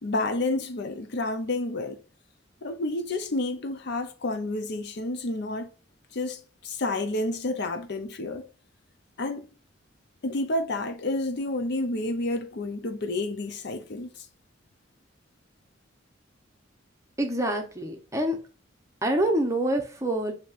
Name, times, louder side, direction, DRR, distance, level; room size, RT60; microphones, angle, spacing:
voice 1, 0.0-2.0 2.6-5.7 6.1-8.5 9.2-9.5 10.2-14.3, left 2 dB, 60° left, 0.6 m, -30 dB
voice 2, 17.2-18.4 19.0-20.3, right 1 dB, 15° right, 0.8 m, -26 dB
7.0 x 2.8 x 2.4 m
head